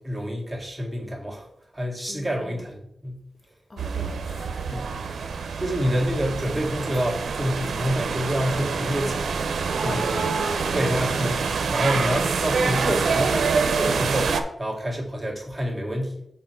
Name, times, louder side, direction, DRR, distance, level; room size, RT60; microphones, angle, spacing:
voice 1, 0.0-1.5 1.7-3.2 4.7-4.9 5.6-9.4 9.8-10.2 10.7-11.5 11.7-16.2, equal, 10° right, 1.8 m, -27 dB
voice 2, 2.1-2.7 3.7-5.4 9.8-11.1 11.6-12.1, left 2 dB, 45° left, 0.5 m, -41 dB
sound 1, 3.8-14.4, right 5 dB, 90° right, 0.5 m, -26 dB
6.5 x 4.3 x 4.4 m
wide cardioid pair, 80°, 0 cm